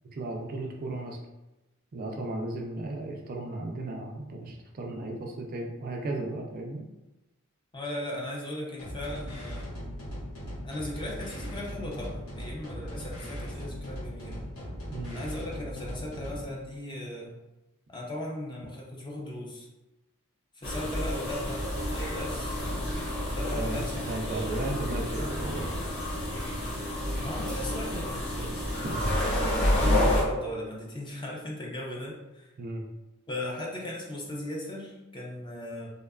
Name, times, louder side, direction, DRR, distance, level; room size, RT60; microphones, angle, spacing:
voice 1, 0.1-1.2 1.9-6.9 14.9-15.2 23.5-25.8 28.8-29.0 32.6-32.8, right 2 dB, 40° right, 1 dB, 0.3 m, -35 dB
voice 2, 7.7-9.7 10.6-14.4 15.1-17.3 17.9-19.7 20.6-22.6 23.4-24.6 27.2-28.9 29.2-32.5 33.3-35.9, left 1 dB, 20° left, -3 dB, 0.4 m, -37 dB
sound 1, 8.8-16.5, equal, 90° left, 1.2 m, -39 dB
sound 2, 20.6-30.2, left 1 dB, 55° left, 0.7 m, -29 dB
2.7 x 2.2 x 2.2 m, 1.0 s
head